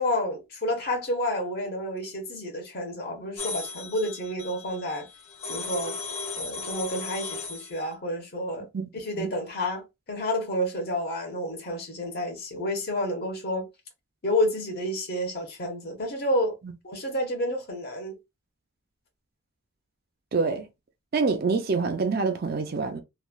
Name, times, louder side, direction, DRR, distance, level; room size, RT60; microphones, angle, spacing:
voice 1, 0.0-5.1 5.5-6.0 6.4-8.7 8.9-13.7 14.2-16.5 16.8-18.2, left 1 dB, 45° left, 1.1 m, -30 dB
sound 1, 3.4-7.8, left 4 dB, 80° left, 1.3 m, -36 dB
voice 2, 20.3-20.7 21.1-23.0, right 4 dB, 45° right, 0.4 m, -26 dB
3.1 x 2.5 x 2.2 m
head